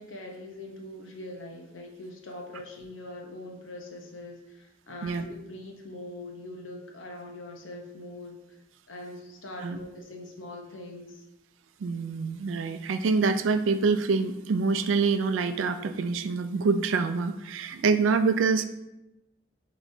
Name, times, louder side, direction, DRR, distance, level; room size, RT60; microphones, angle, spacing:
voice 1, 0.0-8.6 8.9-11.2, left 1 dB, 90° left, 1 dB, 0.8 m, -42 dB
voice 2, 11.8-18.7, right 4 dB, 85° right, 10 dB, 0.4 m, -26 dB
6.3 x 3.1 x 2.7 m, 0.92 s
head